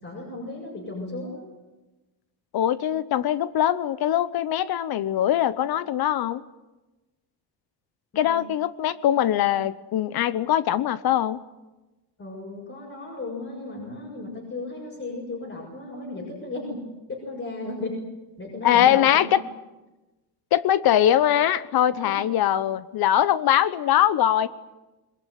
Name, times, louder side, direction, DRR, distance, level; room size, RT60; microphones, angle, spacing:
voice 1, 0.0-1.5 8.1-8.4 12.2-16.7 17.1-17.9 18.4-19.0 22.0-22.1, left 2 dB, 30° left, -3 dB, 6.8 m, -35 dB
voice 2, 2.5-6.4 8.2-11.4 18.6-19.4 20.5-24.5, left 11 dB, 60° left, 16 dB, 1.0 m, -22 dB
22.0 x 21.0 x 9.5 m, 1.1 s
cardioid pair, 135°, 41 cm